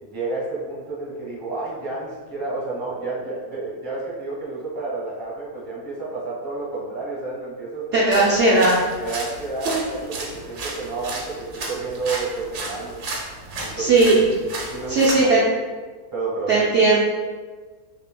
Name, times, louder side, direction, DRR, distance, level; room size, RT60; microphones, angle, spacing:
voice 1, 0.0-8.6 9.0-12.9 13.6-13.9 14.7-15.3 16.1-16.6, right 3 dB, 15° right, -6 dB, 1.0 m, -30 dB
voice 2, 7.9-8.8 13.8-14.1 14.9-15.4 16.5-17.0, right 2 dB, 60° right, -6 dB, 0.8 m, -17 dB
sound 1, 8.1-15.2, right 2 dB, 80° right, 1.3 m, -33 dB
6.0 x 2.7 x 2.2 m, 1.4 s
omnidirectional pair, 1.6 m